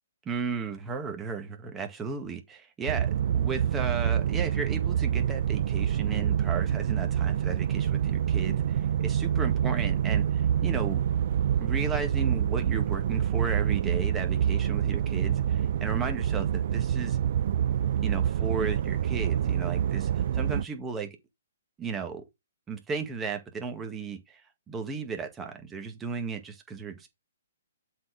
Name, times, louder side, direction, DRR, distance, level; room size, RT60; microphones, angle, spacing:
voice 1, 0.2-3.1 3.3-11.0 11.6-17.2 18.0-21.1 21.8-22.2 22.7-24.4 24.7-27.1, right 5 dB, 15° right, 1.7 m, -35 dB
sound 1, 2.9-20.6, right 9 dB, 55° right, 0.4 m, -26 dB
7.5 x 4.2 x 4.8 m
hypercardioid pair, 145°, 0 cm